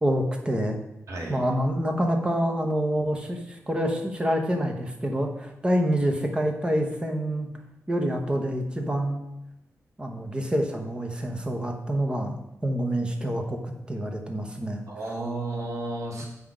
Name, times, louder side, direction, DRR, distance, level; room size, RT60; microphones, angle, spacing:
voice 1, 0.0-0.8 1.3-7.5 7.9-9.2 10.0-14.8, equal, 15° right, 4 dB, 1.0 m, -27 dB
voice 2, 1.1-1.4 14.9-16.2, right 2 dB, 65° right, -2 dB, 2.1 m, -32 dB
7.7 x 5.9 x 5.0 m, 0.86 s
wide cardioid pair, 180°, 6 cm